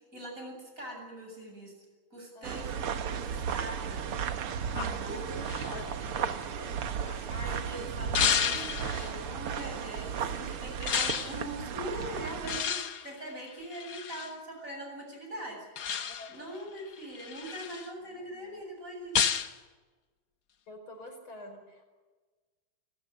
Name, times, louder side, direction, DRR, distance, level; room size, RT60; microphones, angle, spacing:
voice 1, 0.1-1.7 2.1-4.1 4.7-5.3 7.1-12.7 13.0-15.7 15.9-16.0 16.3-19.2, right 1 dB, 35° right, 1 dB, 8.3 m, -42 dB
voice 2, 2.3-2.7 4.6-5.1 5.5-6.3 7.1-7.5 16.1-16.3 20.7-21.8, left 1 dB, 70° left, 4 dB, 5.9 m, -49 dB
sound 1, 2.4-12.6, right 7 dB, 80° right, 2.2 m, -35 dB
sound 2, 4.8-7.4 8.1-9.1 10.9-11.4 12.5-14.3 15.8-16.4 16.9-17.9 19.1-19.6, left 7 dB, 55° left, 1.2 m, -32 dB
29.5 x 14.0 x 9.7 m, 1.3 s
omnidirectional pair, 2.4 m